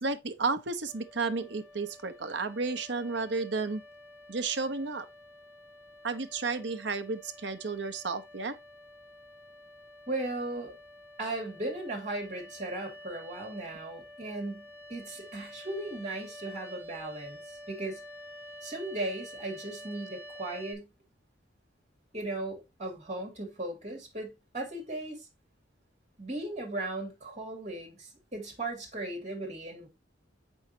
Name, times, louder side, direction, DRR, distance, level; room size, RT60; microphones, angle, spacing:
voice 1, 0.0-3.8 4.3-5.0 6.0-8.6, right 4 dB, 65° right, 0.9 m, -32 dB
sound 1, 0.9-20.7, equal, 10° right, 1.4 m, -49 dB
voice 2, 10.1-10.7 11.2-18.0 18.6-20.9 22.1-25.3 26.2-29.9, right 2 dB, 35° right, 2.9 m, -37 dB
7.0 x 5.5 x 2.8 m
head